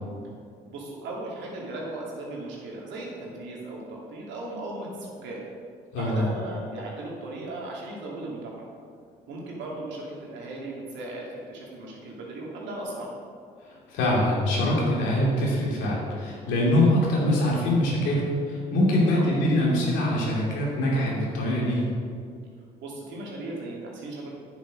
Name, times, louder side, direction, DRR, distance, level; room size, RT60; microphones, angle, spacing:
voice 1, 0.7-5.4 6.0-8.7 9.3-13.1 19.1-19.2 22.8-24.4, right 2 dB, 75° right, -3 dB, 2.6 m, -37 dB
voice 2, 5.9-6.2 13.6-21.9, left 1 dB, 80° left, -3 dB, 2.7 m, -24 dB
9.2 x 7.6 x 5.1 m, 2.2 s
supercardioid pair, 60°, 19 cm